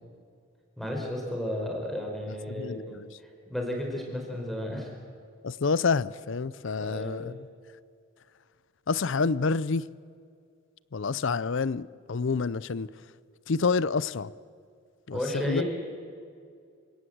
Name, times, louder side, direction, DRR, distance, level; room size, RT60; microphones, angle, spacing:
voice 1, 0.8-5.0 6.8-7.3 15.1-15.6, left 1 dB, ahead, 4.5 m, -33 dB
voice 2, 2.5-3.1 5.4-7.5 8.9-9.9 10.9-12.9 13.5-14.3 15.1-15.2 15.5-15.6, left 4 dB, 55° left, 0.5 m, -28 dB
27.5 x 17.5 x 7.9 m
head